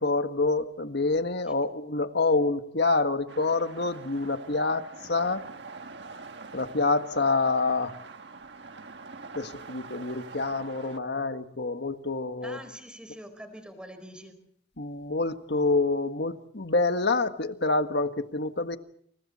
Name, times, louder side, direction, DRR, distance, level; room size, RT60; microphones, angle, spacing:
voice 1, 0.0-5.4 6.5-8.0 9.3-12.6 14.8-18.8, left 3 dB, 60° left, 8 dB, 1.7 m, -27 dB
sound 1, 3.3-11.0, right 4 dB, 65° right, 1.6 m, -45 dB
voice 2, 12.4-14.4, equal, 5° right, 8 dB, 4.8 m, -44 dB
30.0 x 29.5 x 4.3 m, 0.65 s
head